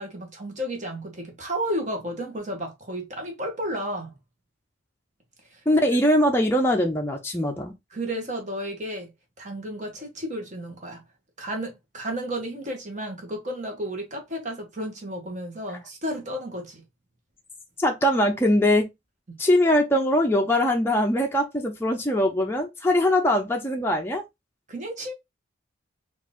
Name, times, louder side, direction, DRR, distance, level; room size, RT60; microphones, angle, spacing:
voice 1, 0.0-4.1 5.5-5.6 7.9-9.1 9.4-11.0 11.4-16.8 19.3-19.4 24.7-25.1, equal, 40° right, 1.1 m, -32 dB
voice 2, 5.7-7.7 17.8-18.9 19.4-24.2, left 1 dB, 10° left, 0.5 m, -22 dB
4.5 x 2.5 x 3.6 m
head